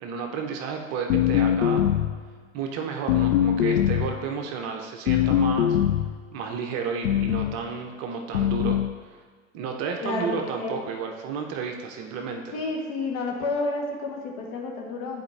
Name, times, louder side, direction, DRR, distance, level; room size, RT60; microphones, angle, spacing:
voice 1, 0.0-1.8 2.5-5.8 6.3-8.8 9.5-12.5, right 6 dB, 40° right, 3 dB, 0.8 m, -32 dB
sound 1, 1.1-2.2 3.1-4.2 5.1-6.2 7.0-7.6 8.3-8.9, left 11 dB, 65° left, 0.5 m, -22 dB
voice 2, 10.0-10.8 12.5-15.2, left 3 dB, 45° left, 0 dB, 1.4 m, -30 dB
10.5 x 4.3 x 3.3 m, 1.5 s
figure-of-eight pair, 95°, 40 cm